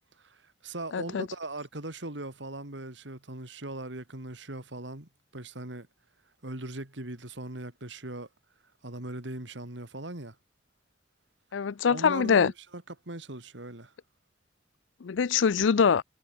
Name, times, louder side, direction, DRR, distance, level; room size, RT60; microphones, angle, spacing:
voice 1, 0.2-5.9 6.4-8.3 8.8-10.3 11.9-13.9, right 2 dB, 75° right, 2.8 m, -39 dB
voice 2, 0.9-1.2 11.5-12.5 15.0-16.0, left 6 dB, 85° left, 0.5 m, -23 dB
head